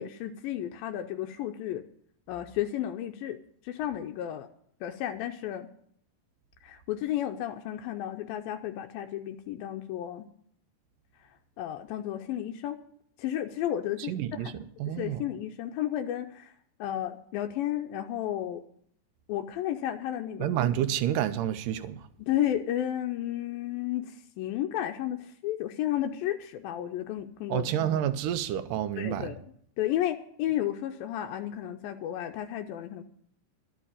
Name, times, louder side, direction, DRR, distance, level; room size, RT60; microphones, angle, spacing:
voice 1, 0.0-1.8 2.3-3.4 3.6-4.5 4.8-5.7 6.6-10.3 11.6-12.8 13.2-14.5 14.9-16.5 16.8-18.6 19.3-20.5 22.2-27.7 29.0-29.4 29.8-33.0, left 12 dB, 85° left, 2.5 m, -32 dB
voice 2, 14.0-14.5 14.8-15.2 20.4-22.0 27.5-29.3, right 11 dB, 75° right, 2.3 m, -29 dB
12.0 x 7.3 x 9.9 m
omnidirectional pair, 4.1 m